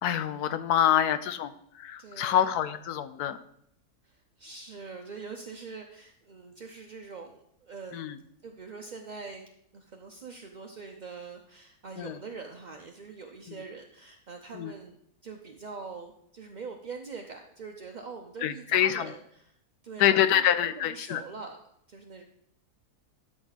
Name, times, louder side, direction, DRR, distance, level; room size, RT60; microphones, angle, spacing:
voice 1, 0.0-3.4 7.9-8.2 12.0-12.2 13.5-13.6 14.5-14.7 18.4-19.1 20.0-21.2, left 10 dB, 80° left, 12 dB, 1.2 m, -26 dB
voice 2, 2.0-2.5 4.0-8.2 8.4-9.4 9.7-19.5 19.8-21.6 21.9-22.2, right 4 dB, 50° right, 3 dB, 0.5 m, -43 dB
13.0 x 6.1 x 4.0 m, 0.72 s
omnidirectional pair, 1.7 m